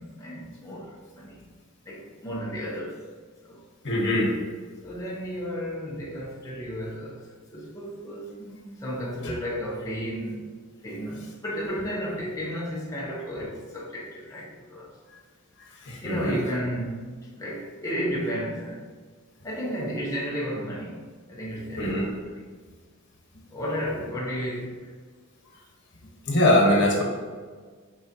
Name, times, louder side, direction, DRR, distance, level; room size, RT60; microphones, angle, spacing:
voice 1, 0.0-1.5 1.9-3.0 3.4-3.6 4.8-7.2 7.5-10.4 10.8-14.9 16.0-18.9 19.4-21.0 21.3-22.4 23.5-24.9, equal, 15° left, -5 dB, 0.8 m, -33 dB
voice 2, 3.8-4.3 9.2-9.3 15.8-16.4 21.8-22.1 26.3-27.0, left 1 dB, 55° left, 0 dB, 1.3 m, -22 dB
6.3 x 5.2 x 2.9 m, 1.5 s
head